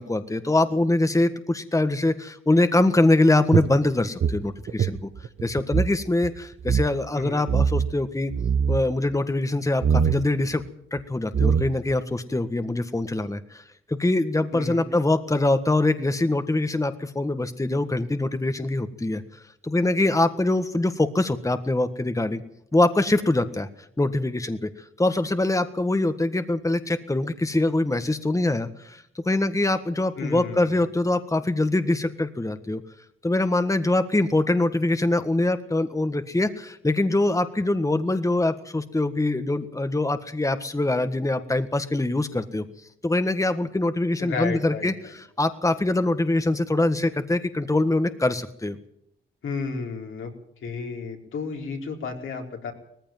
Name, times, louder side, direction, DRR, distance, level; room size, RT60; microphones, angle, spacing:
voice 1, 0.0-5.1 5.4-8.3 8.7-10.6 10.9-13.6 13.9-19.2 19.6-22.4 22.7-23.7 24.0-32.8 33.2-42.6 43.0-48.8, left 2 dB, 15° left, 9 dB, 1.6 m, -23 dB
sound 1, 3.5-6.0 6.2-6.3 6.6-6.9 7.5-7.9 8.3-8.8 9.8-10.2 11.0-11.1 11.3-12.0, right 6 dB, 55° right, 0.9 m, -22 dB
voice 2, 14.5-14.9 30.2-30.8 44.2-45.1 49.4-50.3 50.6-52.7, left 4 dB, 80° left, 2 dB, 4.2 m, -32 dB
18.5 x 15.0 x 9.2 m, 0.74 s
cardioid pair, 55°, 20 cm